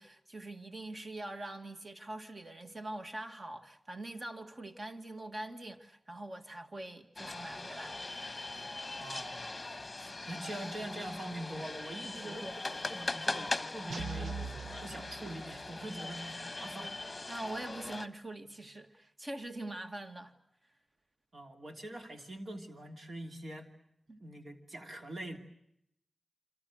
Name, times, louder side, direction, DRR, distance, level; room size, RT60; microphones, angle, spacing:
voice 1, 0.0-8.0 12.1-12.6 17.3-20.3 24.1-24.2, right 1 dB, 35° right, 2.1 m, -43 dB
sound 1, 7.2-18.1, left 2 dB, 25° left, 1.2 m, -40 dB
voice 2, 9.0-9.6 10.0-14.5 14.8-17.0 21.3-23.7 24.2-25.4, right 1 dB, 60° right, 3.0 m, -44 dB
sound 2, 13.9-15.8, right 4 dB, 80° right, 1.3 m, -42 dB
29.0 x 26.0 x 6.4 m
wide cardioid pair, 125°, 0 cm